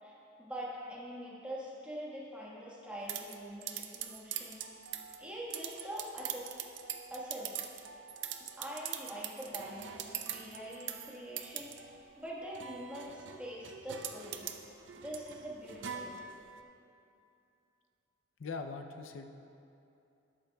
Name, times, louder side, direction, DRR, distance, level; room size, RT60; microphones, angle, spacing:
voice 1, 0.0-4.6 5.2-6.5 7.1-7.6 8.6-9.9 10.3-14.4 15.0-16.2, equal, 5° right, -5 dB, 1.4 m, -44 dB
sound 1, 3.1-16.6, right 9 dB, 65° right, 0.5 m, -43 dB
voice 2, 18.4-19.3, left 4 dB, 80° left, 5 dB, 0.5 m, -41 dB
13.5 x 11.5 x 2.3 m, 2.7 s
head